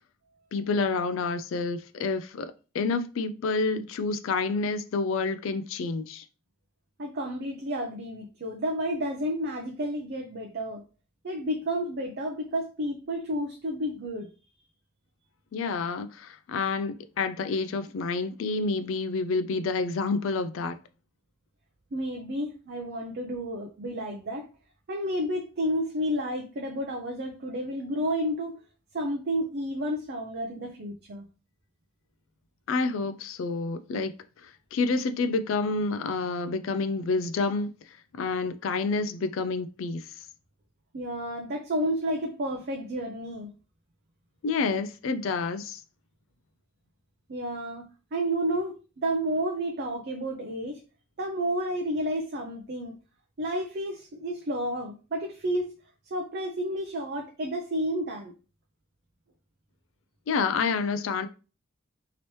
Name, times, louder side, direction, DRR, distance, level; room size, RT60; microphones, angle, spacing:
voice 1, 0.5-6.2 15.5-20.8 32.7-34.1 34.4-37.7 38.1-40.0 44.4-45.8 60.3-61.3, left 4 dB, 75° left, 0.3 m, -28 dB
voice 2, 7.0-10.8 11.2-14.3 21.9-24.5 24.9-28.6 28.9-31.3 40.9-43.5 47.3-50.8 51.2-52.9 53.4-55.7 56.1-58.3, equal, 55° right, 0.5 m, -31 dB
3.0 x 2.9 x 3.0 m
head